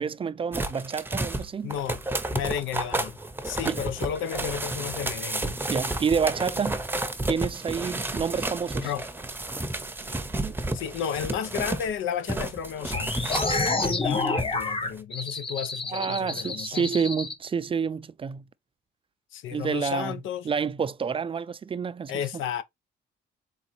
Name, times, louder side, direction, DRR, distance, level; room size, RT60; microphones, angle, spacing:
voice 1, 0.0-1.7 3.7-3.8 5.7-6.8 7.3-8.9 10.4-10.5 15.9-18.4 19.5-22.1, right 6 dB, 25° right, 0.3 m, -29 dB
sound 1, 0.5-11.9 12.3-14.7 15.0-15.1, right 2 dB, 10° right, 0.7 m, -31 dB
voice 2, 1.6-2.0 2.3-3.2 3.4-5.6 8.8-9.1 10.7-13.4 13.8-16.9 19.3-20.5 22.1-22.6, left 8 dB, 85° left, 0.7 m, -32 dB
sound 2, 12.9-17.3, left 3 dB, 25° left, 1.1 m, -29 dB
3.9 x 3.8 x 3.0 m
cardioid pair, 90°, 20 cm